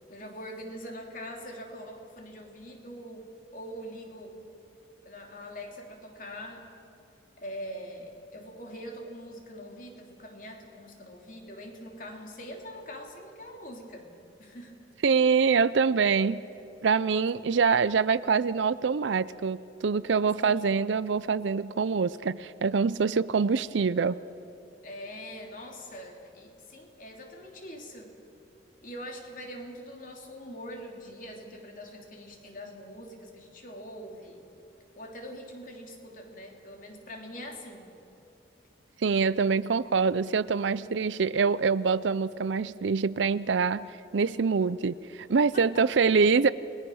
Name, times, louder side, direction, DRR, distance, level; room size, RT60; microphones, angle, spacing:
voice 1, 0.1-4.4 5.0-6.7 7.4-14.1 14.4-14.8 20.4-20.6 24.8-28.1 28.8-34.4 34.9-37.9 45.5-45.9, equal, 45° left, 2 dB, 3.1 m, -43 dB
voice 2, 15.0-16.4 16.8-24.2 39.0-43.9 44.1-46.5, right 5 dB, 85° right, 16 dB, 0.5 m, -25 dB
29.5 x 20.0 x 6.4 m, 3.0 s
head